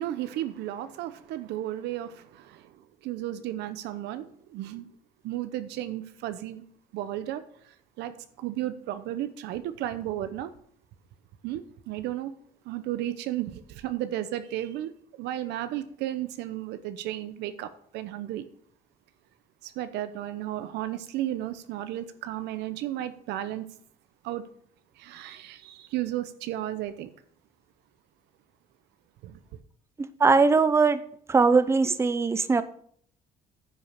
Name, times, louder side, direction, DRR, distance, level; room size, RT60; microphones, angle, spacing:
voice 1, 0.0-4.9 5.2-6.6 6.9-8.1 8.4-10.5 11.4-12.3 12.6-18.5 19.6-23.6 24.2-24.4 25.0-27.1 29.2-29.6, right 13 dB, 85° right, 0.8 m, -34 dB
voice 2, 30.2-31.0 31.3-32.6, right 4 dB, 15° right, 0.6 m, -20 dB
10.0 x 5.2 x 5.9 m
cardioid pair, 110°, 17 cm